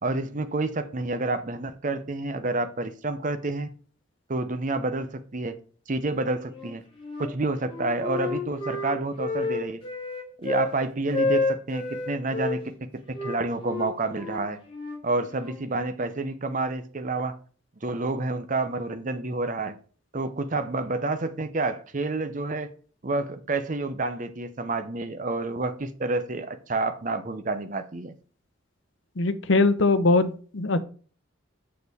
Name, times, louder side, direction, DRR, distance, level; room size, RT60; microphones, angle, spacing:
voice 1, 0.0-3.7 4.3-5.6 5.9-6.8 7.2-9.8 10.4-12.8 13.2-14.6 15.0-17.4 17.8-19.8 20.1-22.7 23.0-28.1, right 2 dB, 40° right, 0.7 m, -29 dB
Wind instrument woodwind instrument, 6.5-7.3 7.6-10.7 11.1-12.6 13.1-15.6, left 3 dB, 30° left, 2.5 m, -30 dB
voice 2, 29.2-30.8, left 3 dB, 75° left, 0.7 m, -21 dB
6.7 x 6.6 x 3.5 m
head